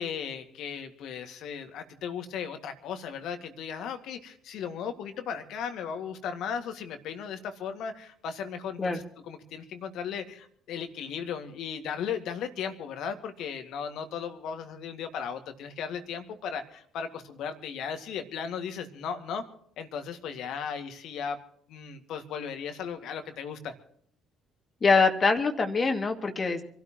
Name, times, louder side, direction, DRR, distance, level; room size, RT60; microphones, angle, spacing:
voice 1, 0.0-19.4 19.8-21.4 21.7-23.7, left 7 dB, 65° left, 7 dB, 2.0 m, -36 dB
voice 2, 24.8-26.6, left 4 dB, 35° left, 4 dB, 2.2 m, -24 dB
27.0 x 13.0 x 3.0 m, 0.62 s
hypercardioid pair, 55°, 0 cm